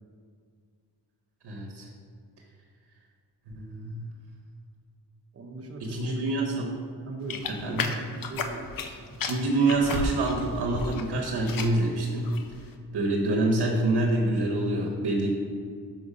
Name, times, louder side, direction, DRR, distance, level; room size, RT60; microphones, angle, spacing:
voice 1, 1.4-1.9 3.5-4.0 5.8-6.7 7.6-7.9 9.2-12.4 12.9-15.3, right 2 dB, 75° right, 0 dB, 1.0 m, -26 dB
voice 2, 5.3-6.3 7.0-7.9 8.2-8.7, right 2 dB, 35° right, 2 dB, 0.8 m, -40 dB
sound 1, 7.3-8.9 9.2-11.0 11.3-11.8 12.3-12.6, left 4 dB, 55° left, 0.6 m, -33 dB
5.8 x 5.1 x 5.4 m, 2.2 s
wide cardioid pair, 155°, 41 cm